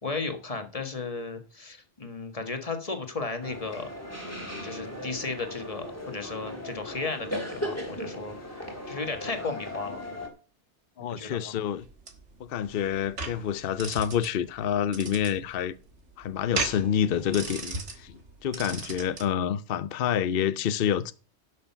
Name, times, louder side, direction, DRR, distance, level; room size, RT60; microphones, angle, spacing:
voice 1, 0.0-3.9 4.6-8.3 8.9-10.0 11.0-11.5, left 3 dB, 30° left, 1.6 m, -34 dB
sound 1, 3.4-10.3, left 1 dB, 15° left, 2.4 m, -37 dB
voice 2, 11.0-11.8 12.4-15.7 16.2-21.1, left 9 dB, 60° left, 0.8 m, -28 dB
sound 2, 11.8-19.3, right 3 dB, 90° right, 2.0 m, -37 dB
11.5 x 6.5 x 5.7 m
omnidirectional pair, 1.2 m